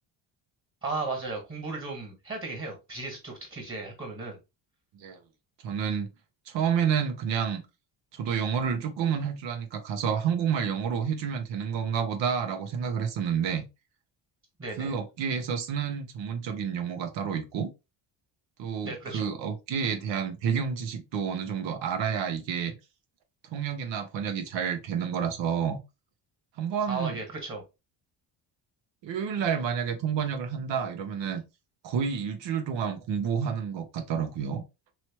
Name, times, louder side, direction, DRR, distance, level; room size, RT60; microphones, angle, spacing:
voice 1, 0.8-4.4 14.6-14.9 18.8-19.3 26.9-27.6, right 3 dB, 30° right, 1.7 m, -35 dB
voice 2, 5.6-6.1 6.5-7.6 8.1-13.7 14.8-17.7 18.6-22.8 23.4-25.8 26.6-27.2 29.0-31.4 31.8-34.6, right 7 dB, 70° right, 1.0 m, -29 dB
3.1 x 3.1 x 3.0 m
cardioid pair, 100°, 45 cm